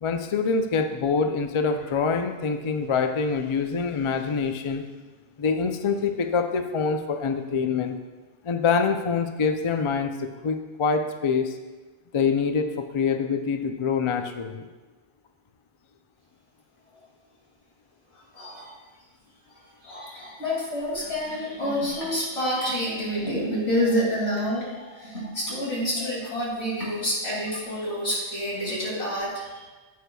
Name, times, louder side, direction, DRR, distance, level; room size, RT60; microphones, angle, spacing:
voice 1, 0.0-4.9 5.4-7.9 8.4-11.6 12.1-14.7, left 5 dB, 45° left, 6 dB, 0.4 m, -25 dB
voice 2, 18.3-18.7 19.8-29.7, equal, 80° left, -6 dB, 2.8 m, -28 dB
9.0 x 8.3 x 2.3 m, 1.3 s
omnidirectional pair, 1.0 m